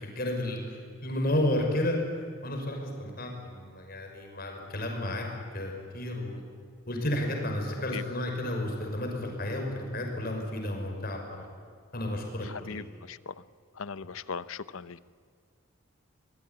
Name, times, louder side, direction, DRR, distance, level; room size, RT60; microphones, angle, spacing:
voice 1, 0.0-2.0 2.4-5.3 5.5-6.4 6.9-11.5 11.9-12.8, left 1 dB, 45° left, 2 dB, 6.0 m, -32 dB
voice 2, 12.4-13.3 13.8-15.0, left 5 dB, 75° left, 16 dB, 0.8 m, -39 dB
24.5 x 21.5 x 9.8 m, 2.2 s
head